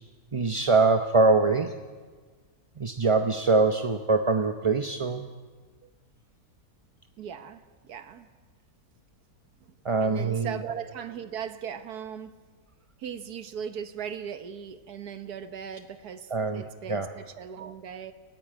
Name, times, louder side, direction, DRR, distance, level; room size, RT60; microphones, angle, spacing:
voice 1, 0.3-1.7 2.8-5.2 9.8-10.6 16.3-17.1, right 3 dB, 30° right, 0.6 m, -23 dB
voice 2, 7.2-8.3 9.7-9.8 10.0-12.4 13.0-18.1, right 8 dB, 90° right, 1.7 m, -38 dB
28.5 x 15.5 x 9.1 m
omnidirectional pair, 1.6 m